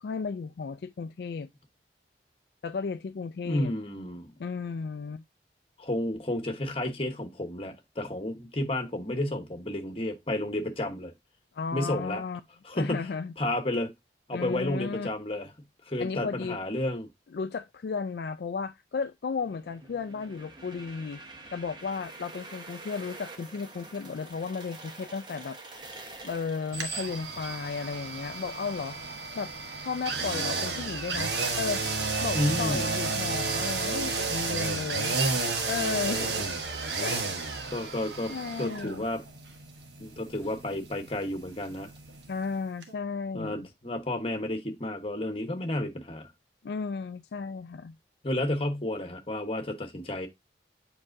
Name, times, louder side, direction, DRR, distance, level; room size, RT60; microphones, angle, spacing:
voice 1, 0.0-1.5 2.6-3.7 4.4-5.2 11.5-12.4 12.7-13.3 14.3-15.1 16.0-16.6 17.3-21.2 21.5-25.6 26.2-29.0 29.4-29.5 29.8-31.8 32.2-35.2 35.7-36.3 37.0-37.2 38.3-39.1 42.3-43.7 46.6-48.0, left 5 dB, 65° left, 0.3 m, -34 dB
voice 2, 3.4-4.3 5.8-11.1 11.7-12.2 12.6-13.1 13.4-13.9 14.3-15.5 15.9-17.1 32.3-32.9 36.1-36.5 37.7-38.3 38.6-39.2 40.0-41.9 43.3-46.3 48.2-50.3, left 1 dB, 30° left, 1.1 m, -31 dB
sound 1, 19.4-29.1, right 2 dB, 25° right, 0.9 m, -47 dB
sound 2, 26.7-42.5 42.8-42.9, right 4 dB, 75° right, 1.2 m, -32 dB
7.6 x 4.9 x 2.6 m
head